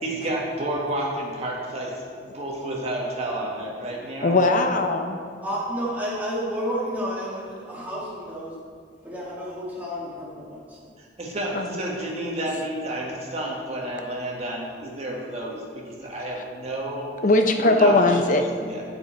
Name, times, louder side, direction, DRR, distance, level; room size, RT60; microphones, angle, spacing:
voice 1, 0.0-2.0 2.3-4.4 11.0-17.1 17.6-18.8, right 1 dB, 35° right, -2 dB, 1.6 m, -30 dB
voice 2, 4.2-5.2 11.5-11.6 17.2-18.7, left 2 dB, 45° left, 5 dB, 0.7 m, -20 dB
voice 3, 5.4-8.5 9.0-10.8, equal, 10° right, -6 dB, 1.8 m, -31 dB
8.5 x 6.6 x 4.4 m, 2.1 s
head